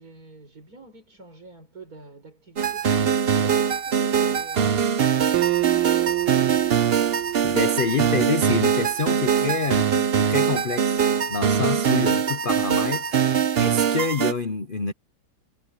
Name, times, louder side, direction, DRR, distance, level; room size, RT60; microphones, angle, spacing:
voice 1, 0.0-5.6, right 3 dB, 45° right, 5.1 m, -48 dB
sound 1, 2.6-14.3, right 7 dB, 60° right, 0.6 m, -22 dB
Acoustic guitar, 5.3-8.7, right 18 dB, 90° right, 1.6 m, -27 dB
voice 2, 7.4-13.2 13.6-14.9, left 4 dB, 50° left, 0.6 m, -27 dB
omnidirectional pair, 2.3 m